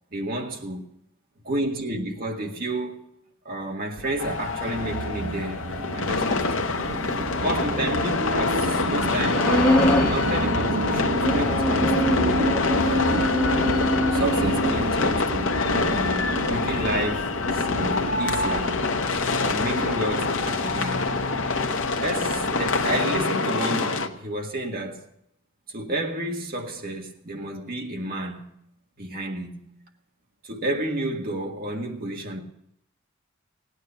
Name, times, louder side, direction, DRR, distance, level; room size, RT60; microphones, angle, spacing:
voice 1, 0.1-0.9 1.4-3.0 3.4-6.7 7.4-12.4 12.8-13.3 14.1-18.8 19.3-21.1 22.0-25.1 25.7-28.6 29.0-29.7 30.4-32.4, right 1 dB, 45° right, 1.6 m, -31 dB
sound 1, 4.0-23.3, right 2 dB, 75° right, 0.9 m, -31 dB
sound 2, 4.2-24.1, left 3 dB, 65° left, 0.9 m, -26 dB
sound 3, 9.3-10.2 11.2-14.8, equal, 10° left, 1.4 m, -24 dB
17.0 x 9.6 x 6.8 m
head